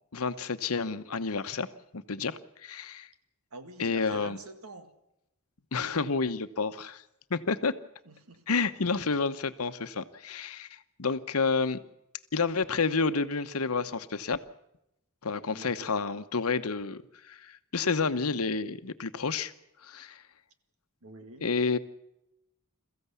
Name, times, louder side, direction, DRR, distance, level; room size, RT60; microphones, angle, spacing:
voice 1, 0.1-1.7 1.9-3.1 3.8-4.4 5.7-7.0 7.3-7.7 8.5-11.8 12.3-14.4 15.2-19.5 19.8-20.2 21.4-21.8, left 4 dB, 85° left, 1.0 m, -30 dB
voice 2, 3.5-4.9 8.1-8.4 15.5-15.9 21.0-21.5, right 2 dB, 85° right, 1.9 m, -46 dB
22.0 x 15.0 x 8.3 m
head